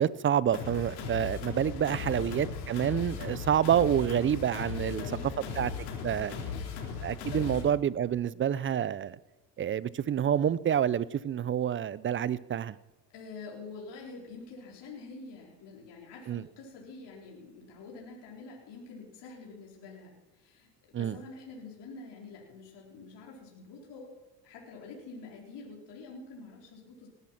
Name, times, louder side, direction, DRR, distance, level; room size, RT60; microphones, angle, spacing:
voice 1, 0.0-5.0 5.6-5.7 6.0-6.3 7.0-9.2 9.6-12.7 16.3-16.4 20.9-21.2, right 9 dB, 25° right, 20 dB, 0.5 m, -28 dB
sound 1, 0.5-7.6, left 6 dB, 85° left, 3.3 m, -37 dB
voice 2, 1.9-2.5 4.7-5.6 6.1-6.7 7.0-7.6 13.1-24.1 24.4-27.1, left 4 dB, 55° left, -2 dB, 4.4 m, -47 dB
19.0 x 11.0 x 5.8 m, 1.1 s
supercardioid pair, 85°, 49 cm